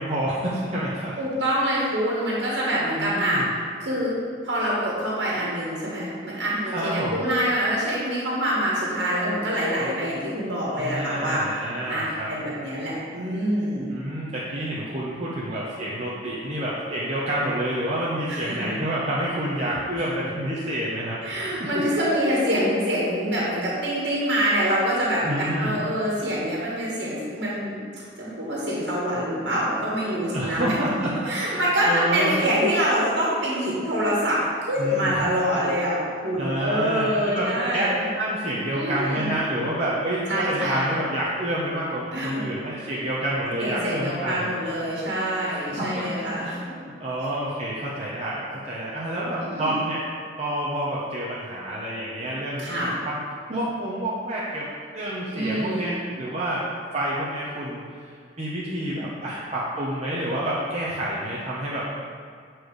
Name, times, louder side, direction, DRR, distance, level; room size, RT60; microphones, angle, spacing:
voice 1, 0.0-1.1 2.9-3.5 6.6-7.2 10.7-12.3 13.9-21.2 21.6-21.7 25.2-25.7 30.3-31.1 31.4-32.3 34.8-35.1 36.4-44.5 45.4-46.0 46.4-46.6 47.0-48.4 48.7-50.0 50.4-53.2 53.5-54.7 54.9-56.6 56.9-57.8 58.4-61.9, right 1 dB, 35° right, -8 dB, 1.1 m, -28 dB
voice 2, 1.2-3.4 3.8-4.1 4.4-11.4 11.9-13.9 18.3-18.7 19.6-19.8 21.2-27.8 28.2-30.7 31.3-35.9 36.2-38.0 38.7-39.3 40.3-41.0 42.1-42.4 42.8-43.0 43.6-46.8 49.4-49.7 52.6-52.9 55.3-56.0, equal, 70° right, -6 dB, 1.9 m, -25 dB
8.5 x 4.6 x 4.9 m, 2.1 s
head